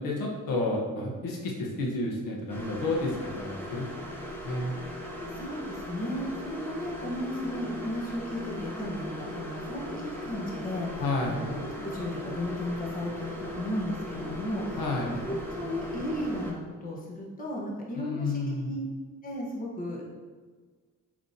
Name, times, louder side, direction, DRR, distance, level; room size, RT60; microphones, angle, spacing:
voice 1, 0.0-3.9 4.4-4.7 11.0-11.4 14.8-15.2 17.9-18.7, left 2 dB, 80° left, -1 dB, 1.3 m, -30 dB
sound 1, 2.5-16.5, left 1 dB, 5° left, 1.0 m, -38 dB
voice 2, 5.3-14.8 15.6-18.9 19.2-20.1, equal, 25° left, -4 dB, 1.3 m, -35 dB
7.2 x 4.9 x 2.9 m, 1.5 s
cardioid pair, 145°, 33 cm